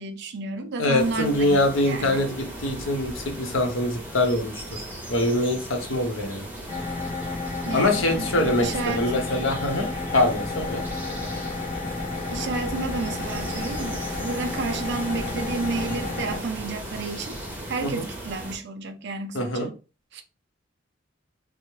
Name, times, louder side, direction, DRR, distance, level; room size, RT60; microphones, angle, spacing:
voice 1, 0.0-2.3 7.7-9.2 12.3-17.4 17.7-19.7 20.1-20.2, right 3 dB, 60° right, 0.5 m, -31 dB
voice 2, 0.8-4.8 5.1-6.5 7.7-10.8 17.8-18.0 19.3-19.7, left 1 dB, 75° left, 0.8 m, -24 dB
sound 1, 1.0-18.6, right 1 dB, 10° right, 0.7 m, -37 dB
sound 2, 6.7-16.4, left 3 dB, 35° left, 0.9 m, -32 dB
3.4 x 2.0 x 3.1 m
head